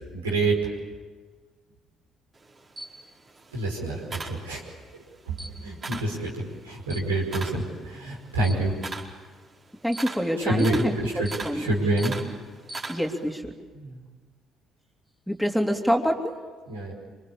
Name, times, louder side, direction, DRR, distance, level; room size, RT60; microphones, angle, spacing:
voice 1, 0.1-0.7 3.5-4.6 5.3-6.4 6.6-8.7 10.4-12.1 13.7-14.0 16.7-16.9, right 2 dB, 80° right, -2 dB, 5.2 m, -27 dB
Camera, 2.3-4.9 5.3-6.2 6.5-13.3, right 3 dB, 35° right, 4.8 m, -38 dB
voice 2, 9.8-11.7 12.9-13.5 15.3-16.3, equal, 5° right, 2 dB, 3.2 m, -26 dB
27.5 x 25.0 x 8.7 m, 1.4 s
figure-of-eight pair, 50°, 0 cm